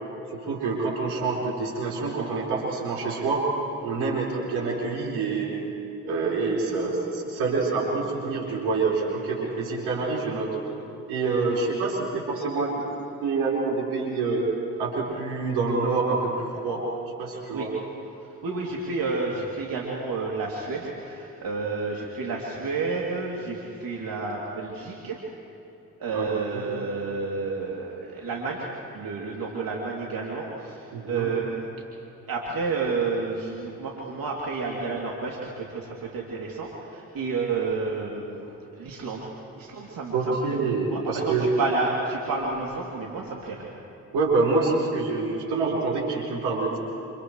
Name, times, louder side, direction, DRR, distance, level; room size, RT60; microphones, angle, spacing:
voice 1, 0.3-3.5 3.8-5.6 6.0-10.5 11.1-12.8 13.2-14.5 14.8-16.8 17.2-17.7 26.1-26.3 26.5-26.6 30.9-31.3 40.1-41.5 44.1-46.8, right 4 dB, 80° right, -4 dB, 5.1 m, -26 dB
voice 2, 18.2-25.2 26.0-31.7 32.3-43.7, right 4 dB, 60° right, -3 dB, 3.0 m, -30 dB
29.0 x 28.0 x 3.3 m, 2.9 s
hypercardioid pair, 45°, 38 cm